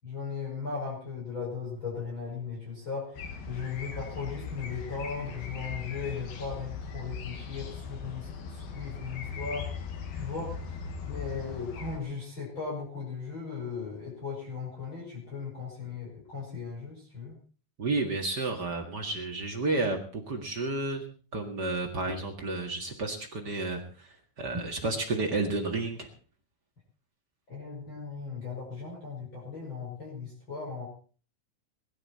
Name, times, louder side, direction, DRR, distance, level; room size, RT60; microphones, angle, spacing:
voice 1, 0.0-9.7 10.1-10.5 11.0-17.4 27.5-30.9, left 5 dB, 30° left, -4 dB, 6.3 m, -37 dB
sound 1, 3.1-12.0, left 5 dB, 65° left, 3.6 m, -39 dB
voice 2, 17.8-21.0 21.3-26.1, right 2 dB, 40° right, 2 dB, 1.5 m, -31 dB
21.5 x 11.5 x 4.3 m, 0.40 s
omnidirectional pair, 4.7 m